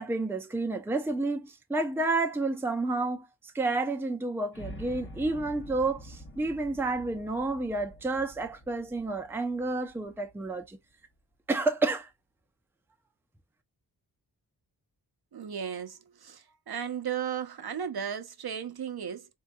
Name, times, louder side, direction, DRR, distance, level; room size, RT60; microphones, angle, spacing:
voice 1, 0.0-3.3 3.5-10.8 11.5-12.1, right 2 dB, 5° right, 0.5 m, -30 dB
sound 1, 4.5-10.6, equal, 30° left, 1.0 m, -47 dB
voice 2, 15.3-19.3, right 8 dB, 60° right, 0.7 m, -35 dB
3.7 x 2.7 x 2.2 m
wide cardioid pair, 85°, 42 cm